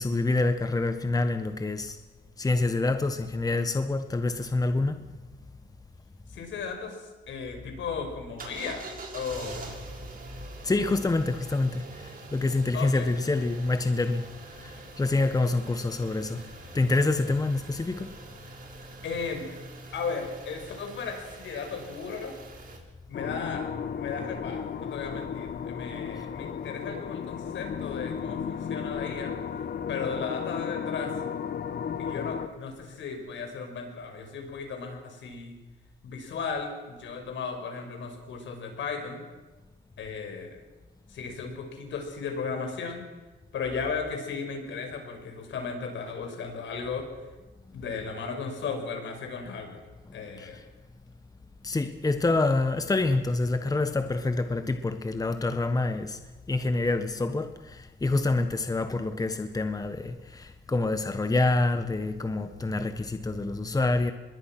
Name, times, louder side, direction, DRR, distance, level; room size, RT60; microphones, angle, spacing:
voice 1, 0.0-2.0 2.4-5.0 10.6-14.3 14.6-16.4 16.7-18.2 50.4-50.6 51.6-56.2 56.5-64.1, left 2 dB, 20° left, 1.3 m, -27 dB
voice 2, 6.3-8.9 9.1-9.8 12.7-13.1 19.0-19.5 19.9-22.3 23.1-29.3 29.9-31.1 32.0-35.5 36.0-39.2 40.0-40.6 41.1-43.1 43.5-47.1 47.7-49.8 50.1-50.6, left 5 dB, 70° left, 5.7 m, -35 dB
sound 1, 8.4-22.8, right 3 dB, 45° right, 5.7 m, -45 dB
sound 2, 23.1-32.5, left 7 dB, 50° left, 1.2 m, -34 dB
25.0 x 21.5 x 6.1 m
cardioid pair, 90°, 20 cm